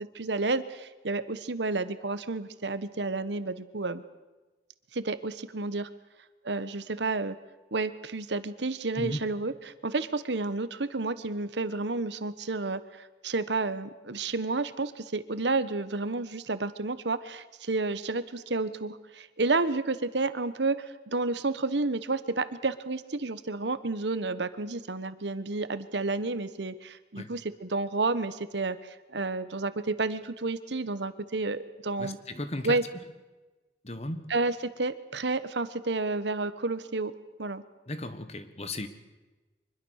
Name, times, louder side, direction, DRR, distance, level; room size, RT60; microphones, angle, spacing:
voice 1, 0.1-4.0 4.9-5.9 6.4-7.4 7.7-9.5 9.8-32.2 32.6-32.8 34.3-37.1 37.4-37.6, right 3 dB, 80° right, 13 dB, 1.2 m, -30 dB
voice 2, 32.0-32.9 33.8-34.4 37.9-38.9, left 1 dB, 35° left, 11 dB, 1.4 m, -36 dB
24.5 x 21.5 x 6.5 m, 1.2 s
head